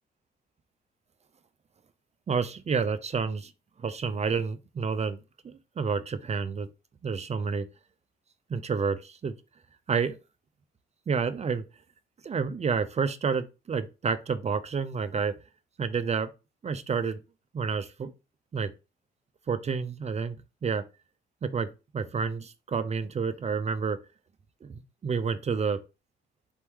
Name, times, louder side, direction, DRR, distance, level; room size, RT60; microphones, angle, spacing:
voice 1, 2.3-3.5 3.8-5.2 5.4-6.7 7.0-7.7 8.5-9.3 9.9-10.1 11.1-11.6 12.2-15.4 15.8-16.3 16.6-17.2 17.5-18.1 18.5-18.7 19.5-20.9 21.4-24.0 24.6-25.8, right 5 dB, 35° right, 0.5 m, -29 dB
4.3 x 3.0 x 3.5 m
cardioid pair, 90°, 20 cm